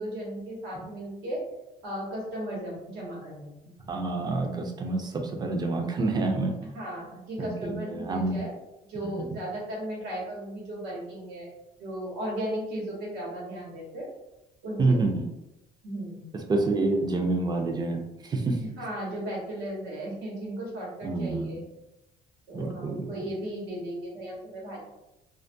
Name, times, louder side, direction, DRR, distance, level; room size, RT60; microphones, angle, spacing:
voice 1, 0.0-1.4 1.8-3.5 6.6-8.6 8.9-11.5 11.8-14.1 14.6-15.0 15.8-16.3 18.6-21.6 22.5-24.8, right 1 dB, 85° right, -3 dB, 1.1 m, -35 dB
voice 2, 3.9-6.5 7.4-8.4 9.0-9.3 14.8-15.2 16.5-18.6 21.0-21.6 22.5-23.1, right 3 dB, 25° right, 3 dB, 0.4 m, -28 dB
2.3 x 2.1 x 2.6 m, 0.90 s
cardioid pair, 110°, 17 cm